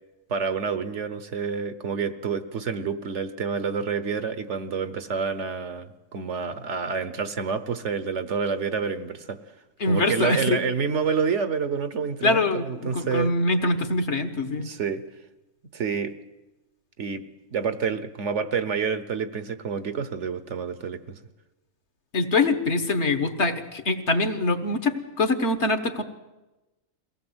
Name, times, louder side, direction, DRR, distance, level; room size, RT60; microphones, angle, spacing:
voice 1, 0.3-9.4 9.9-13.3 14.6-15.0 15.7-16.1 17.0-17.2 17.5-21.2, right 6 dB, 60° right, 12 dB, 1.2 m, -28 dB
voice 2, 9.8-10.6 12.2-14.7 22.1-26.0, left 2 dB, 55° left, 9 dB, 1.5 m, -24 dB
23.0 x 17.0 x 8.0 m, 1.1 s
omnidirectional pair, 1.4 m